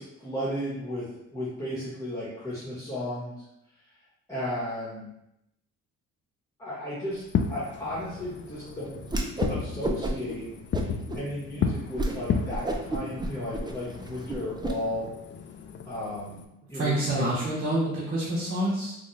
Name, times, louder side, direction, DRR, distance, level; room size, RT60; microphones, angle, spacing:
voice 1, 0.0-3.3 4.3-5.1 6.6-7.2 7.5-9.0 9.5-10.4 11.1-15.0 15.9-16.4 16.7-17.2, left 1 dB, 10° left, -9 dB, 1.3 m, -34 dB
Fireworks, 7.2-16.4, left 6 dB, 40° left, 0.4 m, -34 dB
Whoosh swoosh swish, 9.1-9.6 9.8-10.3 10.7-11.2 11.6-11.7 12.0-12.2 12.5-14.7, right 2 dB, 15° right, 0.5 m, -30 dB
voice 2, 16.7-19.0, right 1 dB, 45° right, -7 dB, 1.1 m, -27 dB
4.0 x 2.4 x 3.2 m, 0.83 s
cardioid pair, 90°, 30 cm